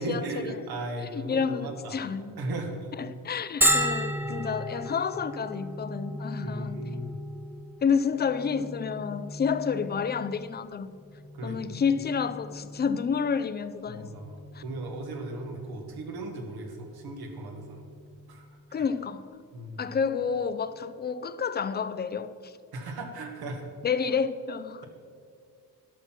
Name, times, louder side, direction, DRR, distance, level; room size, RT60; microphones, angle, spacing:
voice 1, 0.0-2.0 2.4-2.8 4.2-4.7 6.4-7.2 11.3-11.8 13.9-17.8 18.3-18.5 19.5-19.8 22.7-23.6, right 2 dB, 75° right, 1.8 m, -37 dB
voice 2, 1.1-2.3 3.0-7.0 7.8-11.0 11.4-14.1 14.5-14.6 18.7-19.3 19.8-22.5 23.8-24.9, left 6 dB, 25° left, 0.5 m, -29 dB
Bell, 3.6-19.0, right 1 dB, 5° right, 0.8 m, -35 dB
12.0 x 5.9 x 6.0 m
cardioid pair, 105°, 37 cm